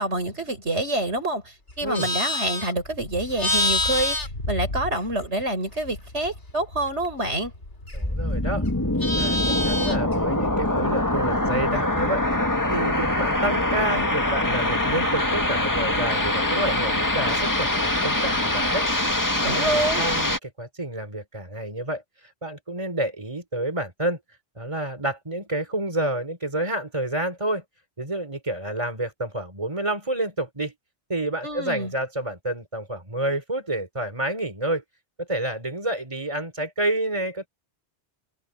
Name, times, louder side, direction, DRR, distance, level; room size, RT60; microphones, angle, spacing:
voice 1, 0.0-7.5 19.4-20.0 31.4-31.9, right 1 dB, 85° right, 6.3 m, -27 dB
Livestock farm animals working animals, 1.7-5.4 5.7-8.2 8.6-10.1, left 1 dB, 90° left, 4.2 m, -28 dB
sound 1, 7.9-20.4, left 1 dB, 15° left, 2.0 m, -24 dB
voice 2, 7.9-8.7 9.1-12.2 12.7-22.0 22.4-24.2 24.6-27.6 28.0-30.7 31.1-34.8 35.2-37.5, right 1 dB, 25° right, 4.0 m, -29 dB
open air
omnidirectional pair, 1.1 m